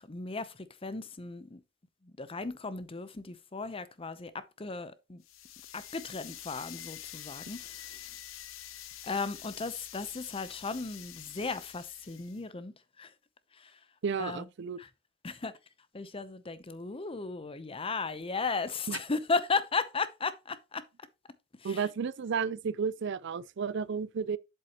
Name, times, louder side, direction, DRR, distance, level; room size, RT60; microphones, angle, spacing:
voice 1, 0.0-1.6 2.0-5.2 5.7-8.1 9.0-13.1 13.5-13.8 14.2-14.5 14.8-14.9 15.2-15.5 15.9-20.8 21.6-21.9, left 4 dB, 30° left, 0.7 m, -36 dB
sound 1, 5.2-12.4, left 12 dB, 90° left, 0.8 m, -47 dB
voice 2, 14.0-14.8 18.9-19.0 21.6-24.4, right 6 dB, 60° right, 0.4 m, -32 dB
7.8 x 7.5 x 3.0 m
head